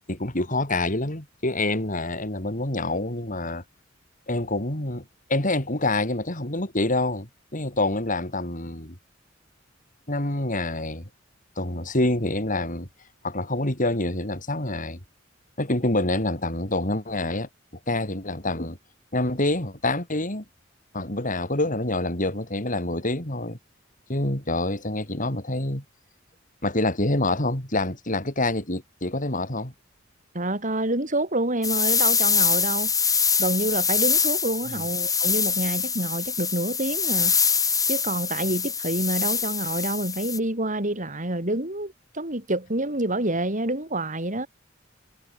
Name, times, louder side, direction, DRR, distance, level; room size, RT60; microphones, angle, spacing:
voice 1, 0.1-3.6 4.3-5.0 5.3-9.0 10.1-11.1 11.6-12.9 13.2-15.0 15.6-17.5 17.9-18.8 19.1-20.4 20.9-23.6 24.1-25.8 26.6-29.7 34.7-34.8, left 2 dB, 45° left, 5.5 m, -26 dB
voice 2, 30.3-32.9 33.4-37.4 37.9-44.5, right 1 dB, 40° right, 6.0 m, -27 dB
sound 1, 31.6-40.4, left 6 dB, 20° left, 4.8 m, -24 dB
head